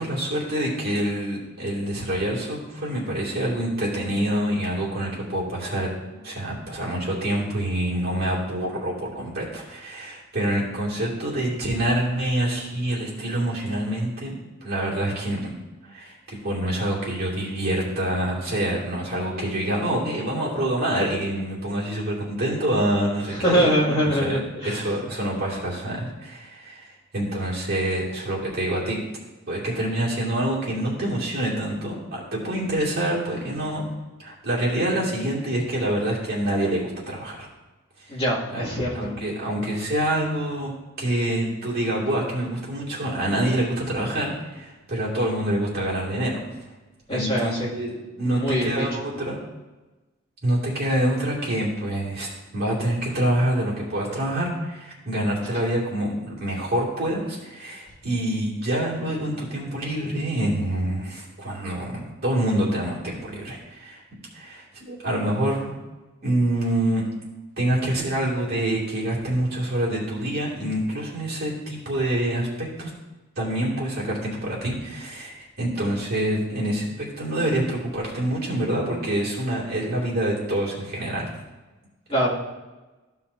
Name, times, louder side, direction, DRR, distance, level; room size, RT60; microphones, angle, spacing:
voice 1, 0.0-14.3 14.6-15.5 15.8-29.0 29.5-33.8 34.2-37.5 38.1-38.2 38.5-38.6 38.9-46.4 47.1-49.4 50.4-64.0 64.3-65.7 66.2-67.0 67.6-72.9 73.4-81.3, right 1 dB, 50° right, -5 dB, 2.5 m, -26 dB
voice 2, 23.3-24.8 38.1-39.1 47.1-47.7 48.2-48.9 82.1-82.3, equal, 30° left, -8 dB, 2.4 m, -23 dB
14.0 x 5.6 x 2.7 m, 1.2 s
head